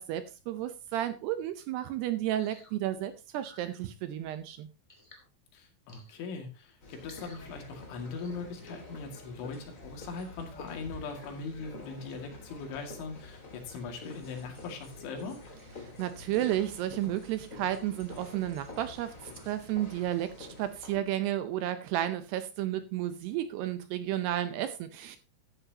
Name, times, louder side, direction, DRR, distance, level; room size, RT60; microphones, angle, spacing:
voice 1, 0.0-4.7 15.8-25.2, right 12 dB, 80° right, 11 dB, 2.5 m, -32 dB
sound 1, 2.4-2.7 3.4-3.8 4.9-5.3 5.9-6.2 6.9-7.4 8.1-8.4, left 1 dB, 15° left, 1.1 m, -55 dB
voice 2, 5.5-15.4, left 4 dB, 90° left, 4 dB, 4.6 m, -40 dB
sound 2, 6.8-21.0, left 2 dB, 30° left, 1.4 m, -48 dB
13.5 x 9.8 x 2.9 m, 0.30 s
omnidirectional pair, 5.3 m